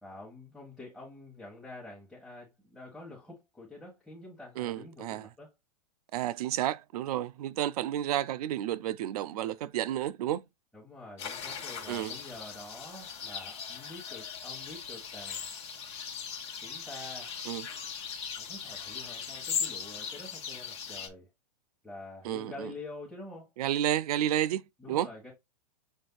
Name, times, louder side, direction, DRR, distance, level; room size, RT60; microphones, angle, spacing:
voice 1, 0.0-5.5 10.7-15.5 16.6-17.3 18.4-21.3 21.8-23.5 24.8-25.3, left 2 dB, ahead, 1.6 m, -47 dB
voice 2, 4.6-5.3 6.1-10.4 11.9-12.1 17.5-17.7 22.2-22.7 23.6-25.1, right 12 dB, 65° right, 0.5 m, -31 dB
sound 1, 11.2-21.1, left 7 dB, 30° left, 1.2 m, -39 dB
7.3 x 2.7 x 2.3 m
hypercardioid pair, 135°, 21 cm